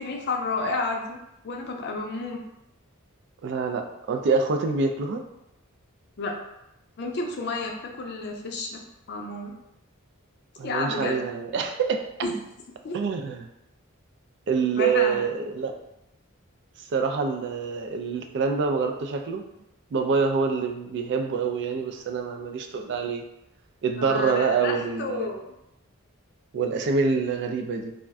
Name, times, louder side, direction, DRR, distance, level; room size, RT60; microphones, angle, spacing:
voice 1, 0.0-2.4 6.2-6.4 7.0-8.8 9.1-9.6 10.6-11.2 12.2-12.4 12.8-13.0 14.7-15.2 24.0-25.5, left 3 dB, 50° left, 2 dB, 0.4 m, -31 dB
voice 2, 3.4-5.2 10.6-12.0 12.9-13.5 14.5-15.8 16.9-19.4 19.9-23.2 23.8-25.3 26.5-27.9, right 5 dB, 55° right, 5 dB, 0.3 m, -26 dB
2.4 x 2.1 x 3.4 m, 0.87 s
head